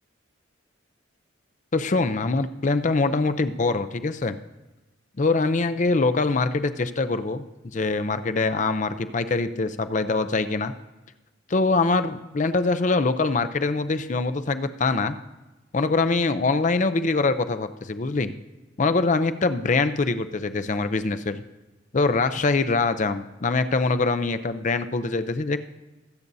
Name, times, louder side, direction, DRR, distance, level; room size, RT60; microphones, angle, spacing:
voice 1, 1.7-4.4 5.2-7.4 7.7-10.7 11.5-15.2 15.7-18.3 18.8-21.4 21.9-25.6, left 3 dB, 40° left, 11 dB, 0.5 m, -23 dB
21.0 x 8.2 x 2.7 m, 1.1 s
head